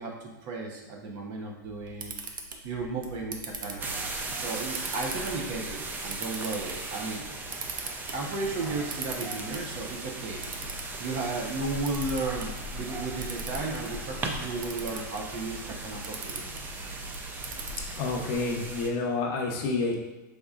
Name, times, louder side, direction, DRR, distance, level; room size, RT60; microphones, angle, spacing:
voice 1, 0.0-2.1 2.6-3.9 4.3-7.2 8.1-10.6 11.0-16.4 17.3-17.5, right 3 dB, 45° right, 0 dB, 1.0 m, -34 dB
Camera, 1.6-18.3, right 4 dB, 80° right, 0.7 m, -42 dB
sound 1, 3.8-18.9, right 2 dB, 15° right, 0.5 m, -37 dB
voice 2, 18.0-19.9, left 3 dB, 45° left, 1 dB, 0.8 m, -29 dB
5.2 x 3.8 x 2.4 m, 1.1 s
hypercardioid pair, 130°, 11 cm